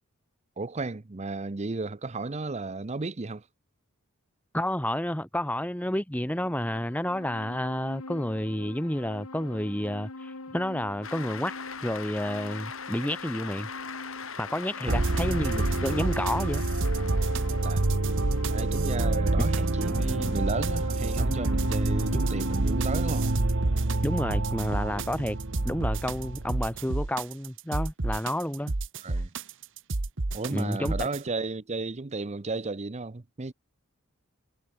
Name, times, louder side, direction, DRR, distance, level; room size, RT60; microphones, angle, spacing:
voice 1, 0.6-3.4 14.9-15.3 17.6-17.9 18.5-23.3 29.0-29.3 30.3-33.5, right 3 dB, 30° right, 0.6 m, -34 dB
voice 2, 4.5-11.5 11.8-13.7 14.4-16.6 22.1-22.2 24.0-25.4 25.6-28.7 30.5-31.1, left 1 dB, 5° left, 1.6 m, -30 dB
sound 1, 6.2-22.5, left 3 dB, 80° left, 1.9 m, -45 dB
Cheering / Applause, 11.0-17.9, left 6 dB, 60° left, 6.0 m, -41 dB
sound 2, 14.9-31.3, right 2 dB, 55° right, 1.2 m, -27 dB
head